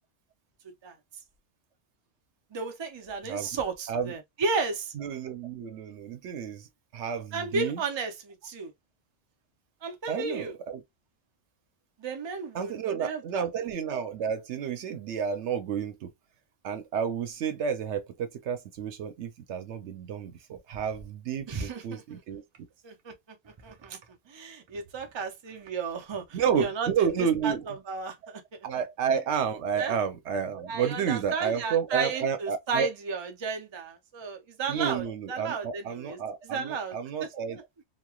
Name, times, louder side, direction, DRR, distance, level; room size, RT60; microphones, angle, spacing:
voice 1, 2.5-4.9 7.3-8.7 9.8-10.5 12.0-13.4 21.5-22.2 22.8-23.1 23.6-24.0 24.3-27.1 27.4-28.4 29.8-29.9 30.7-36.2 36.4-36.9 37.2-37.3, right 4 dB, 35° right, 0.5 m, -33 dB
voice 2, 4.9-6.7 6.9-7.8 10.1-10.8 12.5-16.1 16.6-22.4 26.3-27.7 28.6-32.9 34.7-37.6, right 7 dB, 85° right, 0.9 m, -31 dB
3.1 x 2.3 x 2.3 m
omnidirectional pair, 1.1 m